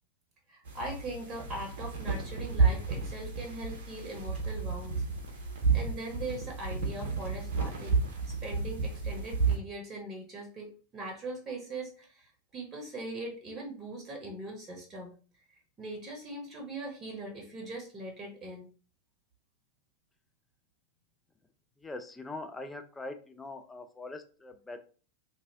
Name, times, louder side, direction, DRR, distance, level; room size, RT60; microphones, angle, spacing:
voice 1, 0.5-4.9 5.3-5.4 5.7-8.0 8.3-15.1 15.8-18.7, right 2 dB, 25° right, 1 dB, 0.9 m, -41 dB
sound 1, 0.7-9.6, right 4 dB, 55° right, 0.7 m, -31 dB
voice 2, 21.8-24.8, left 2 dB, 10° left, 6 dB, 0.4 m, -42 dB
2.8 x 2.4 x 2.8 m, 0.39 s
figure-of-eight pair, 90°, 0 cm